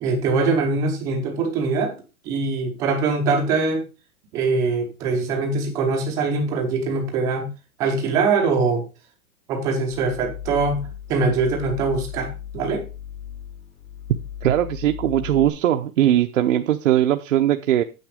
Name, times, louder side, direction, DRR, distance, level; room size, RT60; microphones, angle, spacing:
voice 1, 0.0-1.9 2.2-3.8 4.3-7.5 7.8-8.8 9.5-12.8, right 4 dB, 10° right, 3 dB, 0.6 m, -22 dB
sound 1, 9.9-15.5, left 10 dB, 85° left, 3.5 m, -36 dB
voice 2, 14.4-17.8, right 12 dB, 60° right, 6 dB, 0.8 m, -20 dB
9.3 x 6.7 x 5.0 m, 0.30 s
hypercardioid pair, 170°, 43 cm